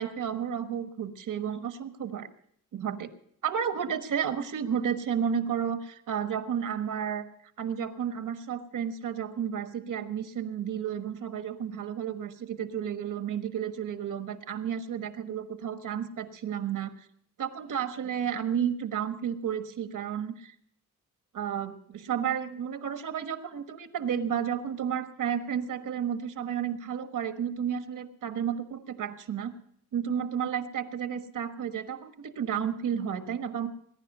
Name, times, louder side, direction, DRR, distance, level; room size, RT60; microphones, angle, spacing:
voice 1, 0.0-2.3 2.7-3.1 3.4-7.2 7.6-17.1 17.4-20.5 21.3-29.5 29.9-33.7, right 8 dB, 75° right, 8 dB, 1.4 m, -32 dB
21.0 x 10.5 x 5.4 m, 0.69 s
wide cardioid pair, 125°, 32 cm